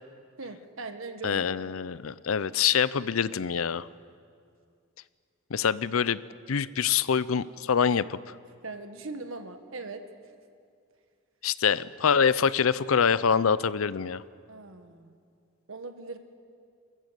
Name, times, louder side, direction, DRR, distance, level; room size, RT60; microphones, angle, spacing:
voice 1, 0.4-1.5 8.6-10.3 14.5-15.1 15.7-16.2, right 3 dB, 75° right, 7 dB, 1.5 m, -40 dB
voice 2, 1.2-3.9 5.5-6.2 6.5-8.2 11.4-14.2, left 7 dB, 80° left, 17 dB, 0.6 m, -25 dB
27.5 x 14.0 x 7.9 m, 2.3 s
head